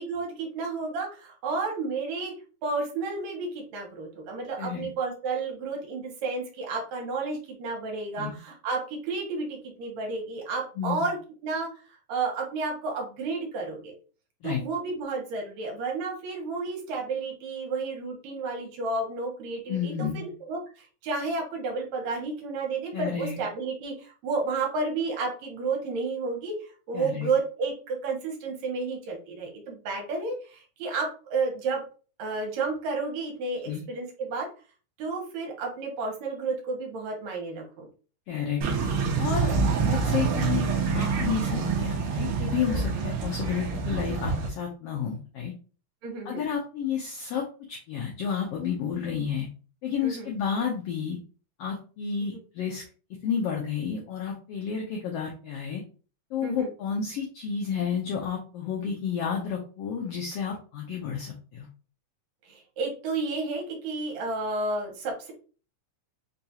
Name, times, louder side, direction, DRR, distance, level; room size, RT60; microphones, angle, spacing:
voice 1, 0.0-2.3 2.6-11.2 11.4-13.9 14.4-31.8 32.2-34.5 35.0-37.9 42.7-42.9 46.0-46.5 50.0-50.3 52.3-52.4 56.4-56.7 62.4-65.3, right 3 dB, 75° right, 1 dB, 2.1 m, -31 dB
voice 2, 4.6-4.9 8.2-8.4 10.8-11.1 14.4-14.6 19.7-20.3 22.9-23.4 26.9-27.3 33.6-33.8 38.3-38.6 39.2-39.5 39.8-40.7 40.9-45.5 46.2-49.5 49.8-51.2 51.6-52.8 53.2-55.8 56.3-61.7, left 7 dB, 85° left, -1 dB, 1.4 m, -31 dB
sound 1, 38.6-44.5, right 4 dB, 90° right, 1.2 m, -26 dB
5.0 x 2.3 x 2.8 m, 0.37 s
omnidirectional pair, 3.5 m